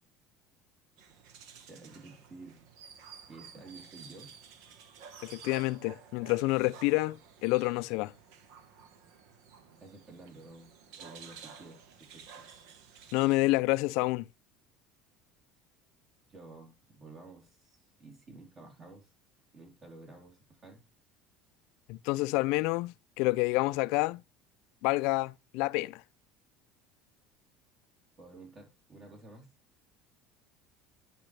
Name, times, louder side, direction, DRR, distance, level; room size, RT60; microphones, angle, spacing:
sound 1, 1.0-13.4, right 6 dB, 75° right, 1.1 m, -52 dB
voice 1, 1.7-2.7 3.3-4.3 9.8-10.7 11.0-12.2 16.3-19.1 19.5-20.8 28.2-29.5, right 3 dB, 40° right, 3.7 m, -51 dB
voice 2, 5.2-8.1 13.1-14.2 21.9-24.2 24.8-26.0, left 21 dB, 75° left, 0.3 m, -28 dB
10.5 x 5.0 x 3.2 m
supercardioid pair, 95°, 0 cm